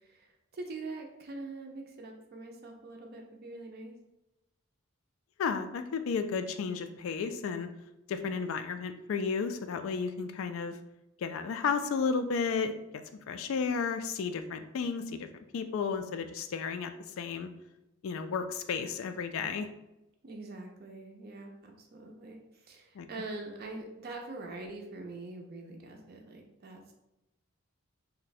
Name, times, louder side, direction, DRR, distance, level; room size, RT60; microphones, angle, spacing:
voice 1, 0.0-3.9 20.2-26.9, right 2 dB, 45° right, 2 dB, 0.4 m, -44 dB
voice 2, 5.4-7.7 8.1-10.8 11.2-12.7 13.3-15.3 15.5-17.5 18.0-19.7 23.0-23.1, left 5 dB, 65° left, 9 dB, 0.3 m, -33 dB
2.6 x 2.1 x 4.0 m, 0.92 s
head